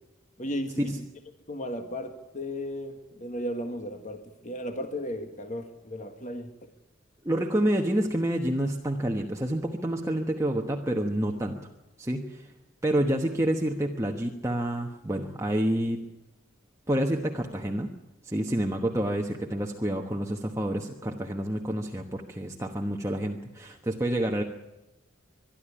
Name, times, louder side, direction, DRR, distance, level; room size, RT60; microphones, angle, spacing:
voice 1, 0.4-1.0 1.5-6.5, equal, 35° left, 6 dB, 1.6 m, -35 dB
voice 2, 7.2-11.6 12.0-12.5 12.8-16.0 16.9-17.9 18.2-24.4, right 1 dB, 15° right, 1 dB, 1.1 m, -28 dB
23.0 x 12.0 x 9.9 m, 0.98 s
head